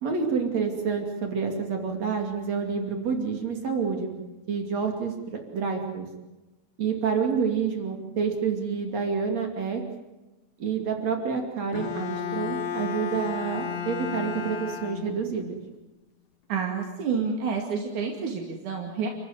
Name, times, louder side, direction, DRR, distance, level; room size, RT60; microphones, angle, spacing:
voice 1, 0.0-4.1 4.5-6.1 6.8-9.8 10.6-15.5, right 6 dB, 65° right, 4 dB, 3.9 m, -28 dB
Bowed string instrument, 11.7-15.5, left 8 dB, 75° left, 3.3 m, -33 dB
voice 2, 16.5-19.1, right 5 dB, 85° right, 2 dB, 3.8 m, -29 dB
29.5 x 15.0 x 9.6 m, 1.1 s
omnidirectional pair, 3.4 m